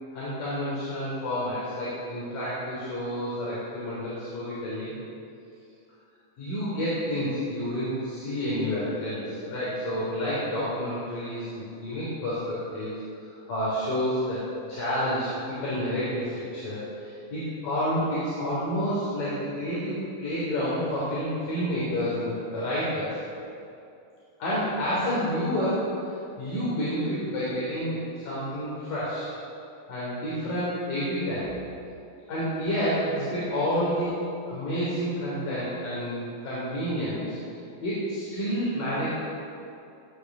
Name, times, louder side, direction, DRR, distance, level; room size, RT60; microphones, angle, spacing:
voice 1, 0.1-4.9 6.4-23.2 24.4-29.3 29.9-31.5 32.3-34.1 34.5-37.4 37.8-39.1, equal, 70° left, -9 dB, 5.1 m, -29 dB
17.5 x 10.5 x 6.6 m, 2.6 s
omnidirectional pair, 4.1 m